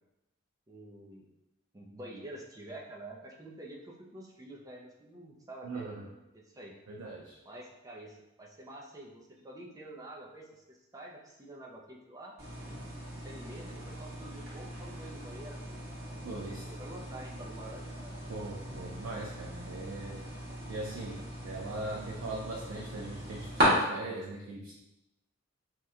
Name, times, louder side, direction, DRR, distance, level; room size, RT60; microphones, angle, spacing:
voice 1, 0.7-1.3 1.7-6.0 6.3-6.7 7.4-12.3 13.2-15.6 16.1-16.3 16.7-18.2, right 1 dB, 15° right, -1 dB, 0.4 m, -48 dB
voice 2, 5.6-6.1 6.9-7.4 16.2-16.6 18.3-20.2 20.7-24.7, right 2 dB, 85° right, -2 dB, 0.4 m, -40 dB
sound 1, 12.4-23.6, equal, 50° right, 1.2 m, -38 dB
2.8 x 2.1 x 3.5 m, 0.95 s
head